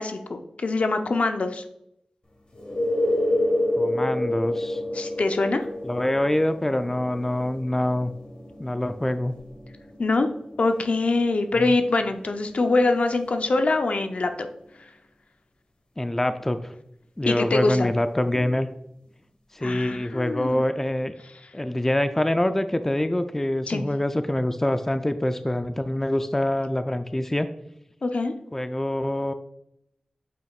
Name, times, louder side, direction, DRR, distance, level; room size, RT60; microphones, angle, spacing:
voice 1, 0.0-1.6 4.9-5.7 10.0-10.3 10.6-14.3 17.3-17.9 19.6-20.5 23.7-23.9 28.0-28.3, left 3 dB, 70° left, 6 dB, 0.6 m, -24 dB
sound 1, 2.5-14.1 18.4-18.5, left 1 dB, 45° left, 1.3 m, -30 dB
voice 2, 3.8-4.8 5.8-8.1 8.6-9.3 11.6-11.8 16.0-16.7 17.2-18.7 19.5-21.1 21.5-27.5 28.5-29.3, left 1 dB, 15° left, 9 dB, 0.3 m, -25 dB
7.5 x 5.2 x 2.4 m, 0.78 s
wide cardioid pair, 85°, 2 cm